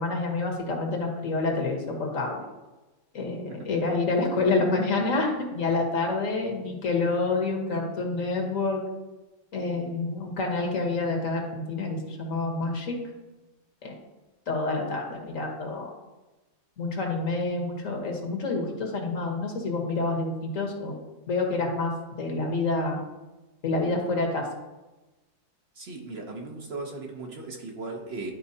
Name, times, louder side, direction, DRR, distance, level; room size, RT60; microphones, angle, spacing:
voice 1, 0.0-2.4 3.1-8.8 9.5-13.0 13.8-14.0 14.5-15.9 16.8-21.0 21.3-21.9 22.2-23.0 23.6-24.4, left 3 dB, 65° left, 2 dB, 1.6 m, -28 dB
voice 2, 25.7-28.3, right 3 dB, 50° right, 2 dB, 1.0 m, -37 dB
11.0 x 4.5 x 2.7 m, 1.1 s
omnidirectional pair, 1.5 m